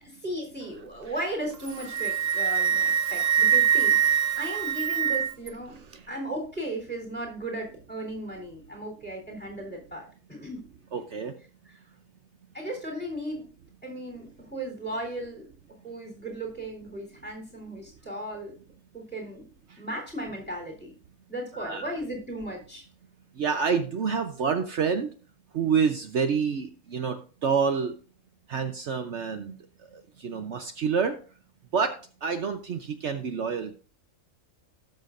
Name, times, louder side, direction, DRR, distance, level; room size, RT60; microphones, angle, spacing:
voice 1, 0.0-5.8 6.1-10.6 11.7-11.8 12.5-13.5 13.8-15.5 15.8-18.6 18.9-19.5 19.8-20.9 21.3-22.9, right 1 dB, 5° left, 1 dB, 3.5 m, -36 dB
Wind instrument woodwind instrument, 1.5-5.5, right 8 dB, 40° right, 0.6 m, -24 dB
voice 2, 10.9-11.3 21.5-21.9 23.4-25.1 25.5-27.2 27.4-27.9 28.5-29.6 30.2-31.1 31.7-31.9 32.2-33.8, right 6 dB, 65° right, 7 dB, 1.1 m, -27 dB
18.0 x 6.5 x 2.5 m, 0.39 s
omnidirectional pair, 1.3 m